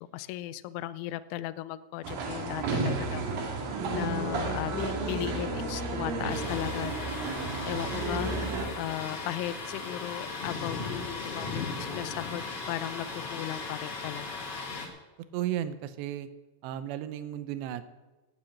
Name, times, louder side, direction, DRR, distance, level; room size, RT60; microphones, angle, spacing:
voice 1, 0.1-3.5 3.9-14.4, left 14 dB, 85° left, 15 dB, 2.8 m, -37 dB
sound 1, 2.0-8.7, right 3 dB, 55° right, 3.0 m, -32 dB
Thunder, 6.3-14.9, left 4 dB, 45° left, 2.1 m, -37 dB
voice 2, 15.3-16.3 16.6-17.8, right 11 dB, 80° right, 12 dB, 2.5 m, -34 dB
13.0 x 9.0 x 8.6 m, 1.1 s
omnidirectional pair, 5.8 m